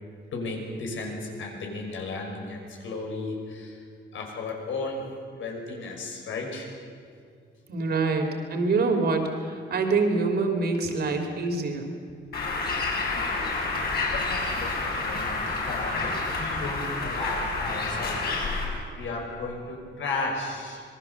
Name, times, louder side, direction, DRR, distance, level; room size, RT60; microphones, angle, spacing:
voice 1, 0.3-3.8 4.1-5.1 5.3-6.7 7.8-7.9 10.7-11.1 12.2-13.6 14.1-18.2 18.7-20.8, left 3 dB, 85° left, 1 dB, 5.8 m, -35 dB
voice 2, 7.7-11.9, right 3 dB, 55° right, 4 dB, 3.2 m, -25 dB
Bird, 12.3-18.6, left 3 dB, 55° left, 5.5 m, -29 dB
26.0 x 21.5 x 7.2 m, 2.1 s
wide cardioid pair, 180°, 20 cm